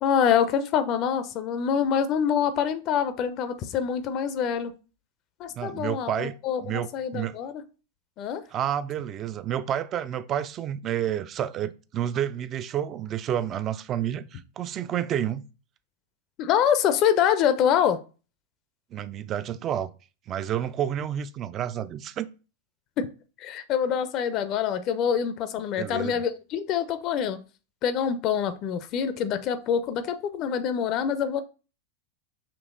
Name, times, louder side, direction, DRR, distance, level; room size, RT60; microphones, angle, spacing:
voice 1, 0.0-4.7 5.4-7.6 8.2-8.4 16.4-18.0 23.0-23.1 23.4-27.4 27.8-31.4, left 8 dB, 35° left, 0.4 m, -25 dB
voice 2, 5.6-6.3 6.6-7.3 8.5-15.4 18.9-19.9 20.3-22.3 25.8-26.2, right 10 dB, 30° right, 0.3 m, -30 dB
5.9 x 3.0 x 2.4 m
figure-of-eight pair, 90°, 0 cm